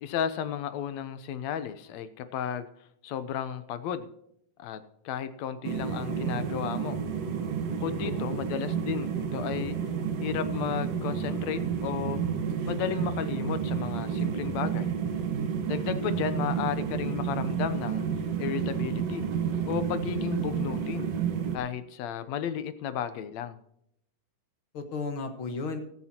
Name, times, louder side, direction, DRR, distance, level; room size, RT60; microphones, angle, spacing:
voice 1, 0.0-2.7 3.0-4.1 4.6-7.0 7.8-9.8 10.2-12.2 12.7-14.9 15.7-18.0 18.4-19.3 19.6-21.1 21.5-23.6, left 9 dB, 65° left, 12 dB, 1.9 m, -33 dB
sound 1, 5.6-21.6, right 7 dB, 55° right, 2.2 m, -30 dB
voice 2, 8.0-8.9 24.7-25.8, left 4 dB, 50° left, 7 dB, 1.8 m, -36 dB
15.5 x 14.0 x 2.9 m, 0.72 s
omnidirectional pair, 3.9 m